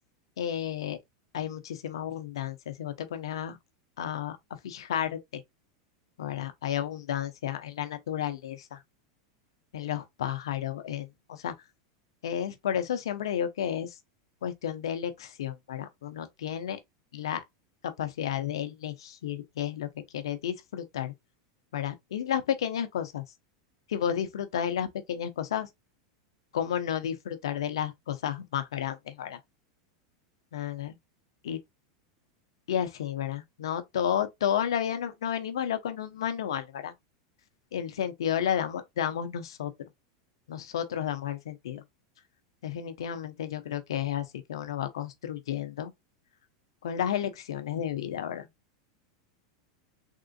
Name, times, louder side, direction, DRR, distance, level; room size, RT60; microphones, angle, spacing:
voice 1, 0.4-1.0 1.3-3.6 4.0-4.4 4.6-5.4 6.2-8.8 9.7-11.5 12.2-13.9 14.4-16.8 17.1-17.4 17.8-19.9 20.1-21.1 21.7-23.2 23.9-25.7 26.5-29.4 30.5-31.0 31.4-31.6 32.7-36.9 37.7-39.7 40.5-41.8 42.6-45.9 46.8-48.5, left 9 dB, 85° left, 0.7 m, -32 dB
3.6 x 2.5 x 2.5 m
hypercardioid pair, 120°, 3 cm